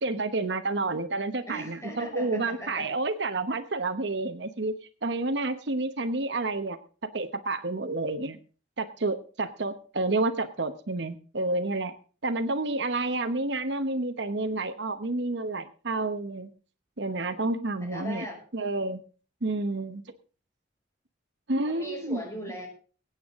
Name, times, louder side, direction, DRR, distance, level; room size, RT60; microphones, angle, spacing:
voice 1, 0.0-4.7 5.0-6.8 7.1-8.4 8.8-11.9 12.2-16.5 17.0-18.3 18.5-19.0 19.4-20.0 21.5-22.2, right 2 dB, 65° right, 9 dB, 1.1 m, -29 dB
voice 2, 1.5-2.9 17.8-18.4 21.7-22.7, equal, 15° left, 1 dB, 6.0 m, -39 dB
23.0 x 9.0 x 3.7 m, 0.38 s
head